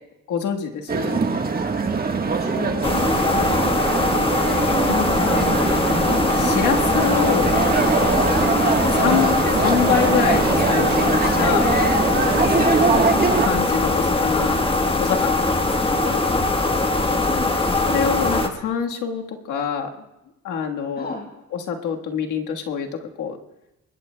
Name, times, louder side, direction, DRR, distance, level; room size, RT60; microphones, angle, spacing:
voice 1, 0.3-1.2 4.9-5.5 5.8-7.6 9.0-11.7 13.4-16.2 17.9-19.9 20.4-21.2 21.5-23.4, left 7 dB, 80° left, 2 dB, 1.5 m, -26 dB
sound 1, 0.9-13.5, right 4 dB, 30° right, 1.4 m, -22 dB
voice 2, 2.4-3.5 8.7-9.0 12.8-13.1 17.3-17.6 21.0-21.3, left 3 dB, 35° left, 1 dB, 6.0 m, -33 dB
sound 2, 2.8-18.5, left 2 dB, 20° left, 1.3 m, -21 dB
23.0 x 20.0 x 2.2 m, 0.95 s
cardioid pair, 90°, 30 cm